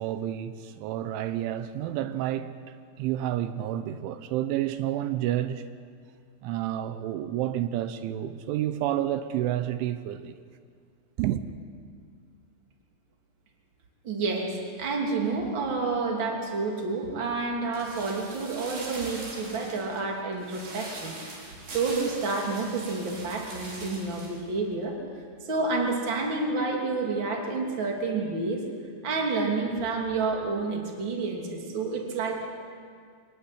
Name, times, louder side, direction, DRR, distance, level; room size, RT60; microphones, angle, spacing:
voice 1, 0.0-5.6 6.4-10.4 11.2-11.4, right 12 dB, 85° right, 3.2 m, -30 dB
voice 2, 14.0-21.2 21.5-25.0 25.4-28.6 29.0-32.5, right 3 dB, 30° right, 2.9 m, -29 dB
sound 1, 17.7-24.4 24.7-24.8, right 2 dB, 45° right, 5.9 m, -42 dB
24.5 x 15.0 x 10.0 m
omnidirectional pair, 5.5 m